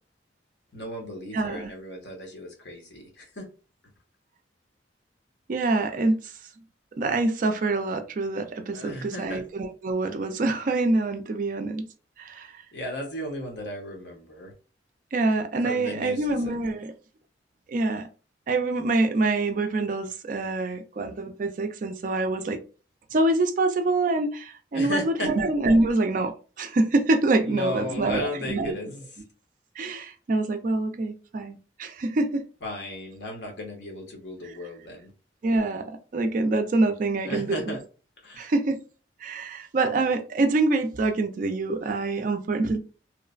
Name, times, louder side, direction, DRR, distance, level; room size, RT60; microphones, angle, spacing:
voice 1, 0.7-3.5 8.7-9.4 12.7-14.5 15.6-16.7 24.7-25.3 27.4-29.1 32.6-35.1 37.2-37.8 38.2-38.5, left 1 dB, 65° left, 0.9 m, -35 dB
voice 2, 1.3-1.7 5.5-6.3 7.0-11.9 12.2-12.5 15.1-16.9 17.7-18.1 18.5-22.6 23.1-28.7 29.8-32.5 35.4-37.7 38.4-38.8 39.2-42.8, right 2 dB, 45° right, 0.3 m, -25 dB
3.1 x 2.0 x 2.4 m
head